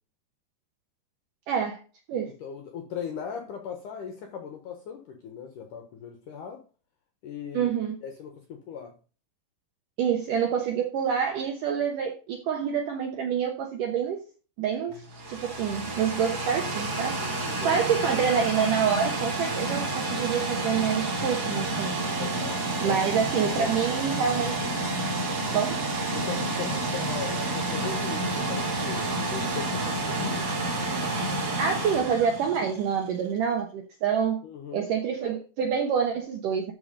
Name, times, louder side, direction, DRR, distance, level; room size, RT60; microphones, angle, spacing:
voice 1, 1.5-1.8 2.1-2.3 7.5-8.0 10.0-14.2 14.6-15.0 15.3-17.2 17.6-21.9 22.8-24.6 25.5-25.8 31.6-34.4 34.7-36.7, right 7 dB, 75° right, 2.0 m, -27 dB
voice 2, 2.1-6.6 7.2-7.7 8.0-9.0 17.2-17.8 22.2-23.0 23.3-23.7 26.1-30.5 34.4-34.9, left 7 dB, 70° left, 2.0 m, -39 dB
sound 1, 14.9-33.0, right 2 dB, 40° right, 1.3 m, -30 dB
13.0 x 4.8 x 5.1 m
omnidirectional pair, 5.1 m